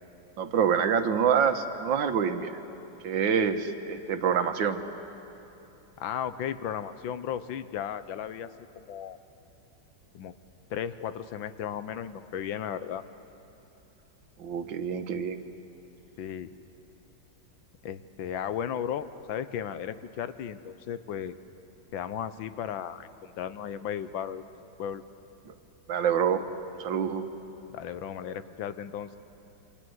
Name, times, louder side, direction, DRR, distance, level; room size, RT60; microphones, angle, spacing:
voice 1, 0.4-2.5 3.0-4.8 14.4-15.4 25.9-26.4 26.8-27.3, right 7 dB, 80° right, 8 dB, 1.9 m, -26 dB
voice 2, 6.0-8.5 8.7-9.2 10.1-10.3 10.7-13.0 16.2-16.5 17.8-21.3 21.9-24.4 24.8-25.0 27.7-29.2, left 9 dB, 90° left, 12 dB, 1.6 m, -35 dB
29.0 x 25.5 x 7.9 m, 2.9 s
omnidirectional pair, 2.0 m